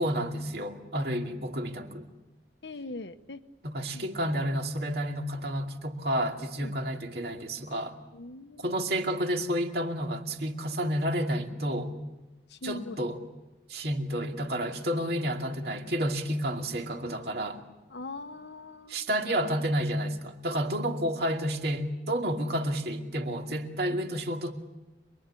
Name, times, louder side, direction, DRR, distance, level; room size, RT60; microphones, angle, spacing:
voice 1, 0.0-2.1 3.6-7.9 8.6-11.9 12.6-13.2 13.7-17.6 18.9-24.5, equal, 65° right, 3 dB, 2.5 m, -30 dB
voice 2, 2.6-3.4 3.9-4.1 6.6-6.8 8.1-8.8 12.5-13.1 17.9-19.0, left 2 dB, 85° left, 10 dB, 1.1 m, -41 dB
27.0 x 22.0 x 8.6 m, 1.1 s
head